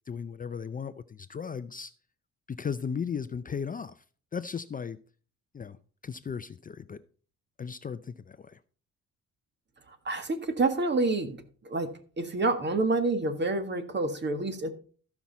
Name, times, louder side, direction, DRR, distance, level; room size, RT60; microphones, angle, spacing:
voice 1, 0.1-1.9 2.5-4.0 4.3-5.0 5.5-7.0 7.6-8.6, left 6 dB, 30° left, 0.5 m, -36 dB
voice 2, 9.9-11.4 11.6-14.7, right 3 dB, 35° right, 1.8 m, -28 dB
14.5 x 5.9 x 4.2 m
cardioid pair, 90°, 30 cm